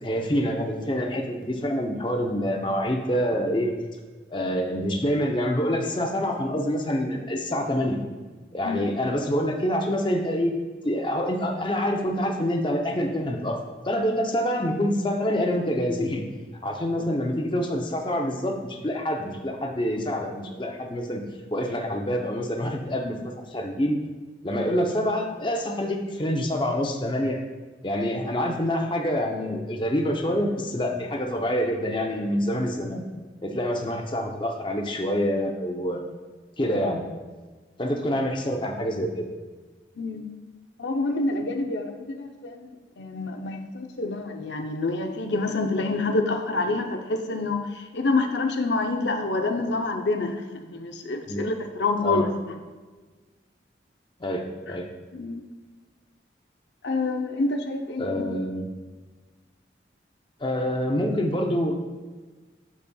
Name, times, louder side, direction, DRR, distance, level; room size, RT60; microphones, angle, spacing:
voice 1, 0.0-3.8 4.3-8.0 8.5-10.6 10.8-16.3 16.6-24.0 24.4-27.4 27.8-33.0 33.4-36.0 36.6-37.0 37.8-39.3 51.3-51.5 52.0-52.2 54.2-54.9 58.0-58.7 60.4-61.7, equal, 25° left, 2 dB, 0.6 m, -26 dB
voice 2, 40.0-40.3 40.8-42.7 43.0-52.3 55.1-55.4 56.8-58.2, left 3 dB, 75° left, 5 dB, 0.7 m, -27 dB
12.0 x 4.2 x 2.3 m, 1.3 s
head